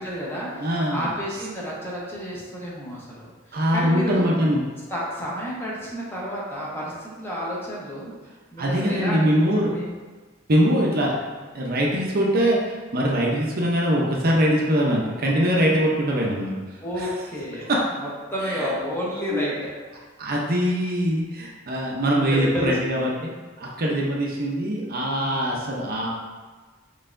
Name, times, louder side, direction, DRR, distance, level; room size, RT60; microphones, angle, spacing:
voice 1, 0.0-0.5 0.9-4.3 4.9-8.1 8.5-9.3 9.5-9.9 10.6-11.0 16.8-19.7 22.2-23.1 25.2-25.6, equal, 10° left, -6 dB, 1.0 m, -31 dB
voice 2, 0.6-1.1 3.5-4.7 8.6-9.7 10.5-11.1 11.5-16.5 17.0-17.1 17.7-17.8 19.3-19.4 20.2-23.3 23.6-26.1, equal, 50° right, -2 dB, 0.7 m, -22 dB
5.6 x 3.2 x 2.6 m, 1.4 s
head